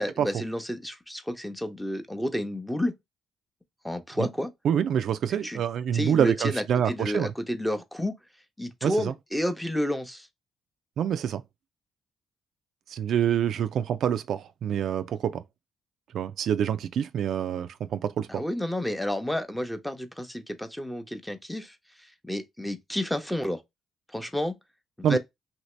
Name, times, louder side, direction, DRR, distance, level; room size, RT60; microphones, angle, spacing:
voice 1, 0.0-2.9 3.8-4.5 5.4-5.6 5.9-8.1 8.6-10.3 18.3-21.7 22.2-23.6 24.1-24.5 25.0-25.2, left 1 dB, 5° left, 0.7 m, -30 dB
voice 2, 4.6-7.3 8.8-9.1 11.0-11.4 12.9-15.4 16.1-18.4 25.0-25.2, right 9 dB, 70° right, 0.3 m, -26 dB
2.9 x 2.7 x 3.1 m
cardioid pair, 90°, 0 cm